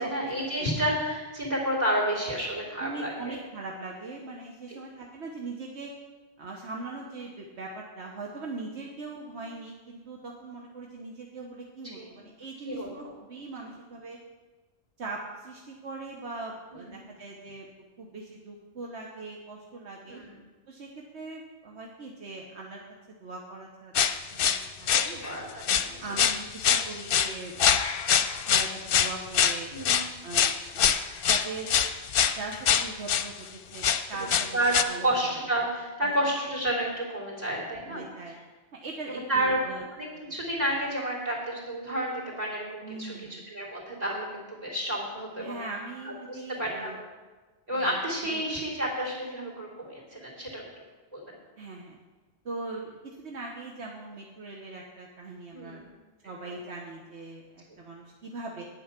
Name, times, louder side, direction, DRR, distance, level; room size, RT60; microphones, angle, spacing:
voice 1, 0.0-3.4 4.7-4.8 11.9-12.2 12.7-13.1 16.7-17.0 20.1-20.4 25.1-26.2 29.7-30.1 34.5-38.4 39.1-45.7 46.0-47.1 47.7-50.6 51.1-51.4 55.5-55.9 56.4-56.5 57.7-57.8, right 1 dB, 40° right, -2 dB, 3.3 m, -31 dB
voice 2, 2.8-5.9 6.4-14.2 15.0-17.7 18.0-20.2 20.7-23.9 24.3-25.2 26.0-27.6 28.5-29.7 30.2-30.9 31.3-31.7 32.3-33.8 34.1-34.6 34.9-35.3 36.0-36.1 37.3-38.4 38.7-39.8 40.3-40.4 42.8-43.4 45.4-47.0 47.7-48.0 48.3-48.5 51.6-52.0 52.4-55.8 56.2-58.6, right 3 dB, 80° right, -1 dB, 1.4 m, -40 dB
sound 1, 23.9-25.4 25.6-25.9 26.2-33.3 33.7-34.8, left 8 dB, 60° left, 0.8 m, -24 dB
10.0 x 9.2 x 5.9 m, 1.3 s
omnidirectional pair, 1.1 m